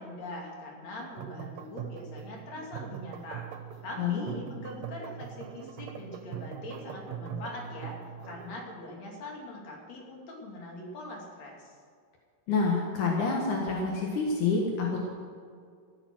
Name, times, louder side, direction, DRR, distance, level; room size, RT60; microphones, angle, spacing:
voice 1, 0.0-3.5 3.8-8.0 8.2-11.7, left 1 dB, 65° left, -1 dB, 3.8 m, -42 dB
sound 1, 1.0-8.6, right 9 dB, 70° right, 2.2 m, -42 dB
voice 2, 12.5-15.1, left 4 dB, 85° left, -1 dB, 3.1 m, -27 dB
14.0 x 12.0 x 6.2 m, 2.2 s
omnidirectional pair, 3.4 m